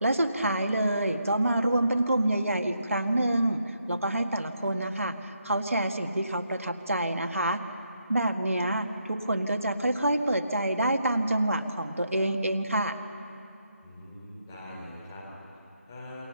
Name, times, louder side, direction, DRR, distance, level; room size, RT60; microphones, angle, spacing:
voice 1, 0.0-3.6 3.9-7.6 8.1-13.0, right 1 dB, 65° right, 6 dB, 1.7 m, -27 dB
voice 2, 13.8-16.3, left 1 dB, 10° left, -6 dB, 3.7 m, -44 dB
28.5 x 22.5 x 7.1 m, 2.7 s
figure-of-eight pair, 170°, 8 cm